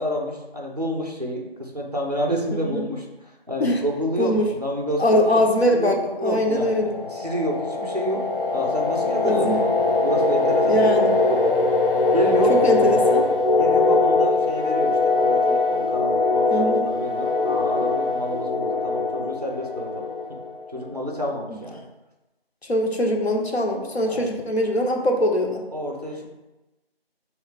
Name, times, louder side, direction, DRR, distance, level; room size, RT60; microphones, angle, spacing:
voice 1, 0.0-3.0 3.5-5.4 5.7-8.2 8.5-9.7 10.0-11.1 12.1-12.5 13.6-20.4 20.7-21.9 24.0-24.3 25.7-26.3, equal, 40° right, 0 dB, 0.7 m, -29 dB
voice 2, 2.5-2.8 3.6-3.8 4.2-4.5 5.0-7.0 9.2-9.6 10.6-11.2 12.5-13.3 16.5-16.9 22.7-25.6, equal, 90° left, 1 dB, 1.0 m, -22 dB
sound 1, 6.2-20.8, left 3 dB, 60° left, 0.5 m, -22 dB
4.9 x 3.1 x 3.3 m, 1.1 s
figure-of-eight pair, 175°, 31 cm